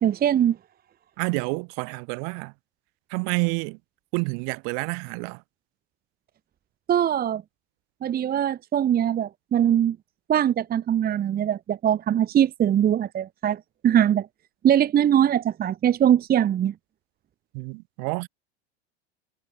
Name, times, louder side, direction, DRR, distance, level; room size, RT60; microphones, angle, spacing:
voice 1, 0.0-0.6 6.9-7.4 8.0-10.0 10.3-14.3 14.6-16.7, right 10 dB, 25° right, 1.0 m, -22 dB
voice 2, 1.2-2.5 3.1-3.8 4.1-5.4 17.5-18.3, right 40 dB or more, 60° right, 3.2 m, -28 dB
hypercardioid pair, 105°, 33 cm